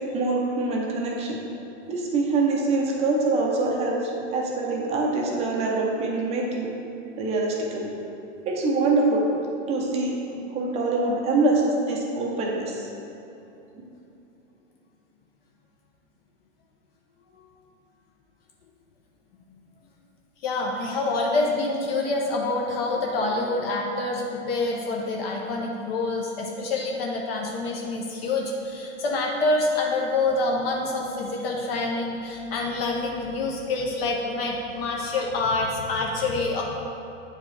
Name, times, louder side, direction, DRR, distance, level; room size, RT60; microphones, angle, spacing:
voice 1, 0.0-1.4 1.9-6.7 7.2-7.9 8.4-9.3 9.7-12.9 13.7-13.9, right 3 dB, 15° right, -2 dB, 0.6 m, -25 dB
voice 2, 20.4-36.6, left 2 dB, 50° left, -1 dB, 0.8 m, -26 dB
8.4 x 4.8 x 3.2 m, 2.9 s
hypercardioid pair, 140°, 38 cm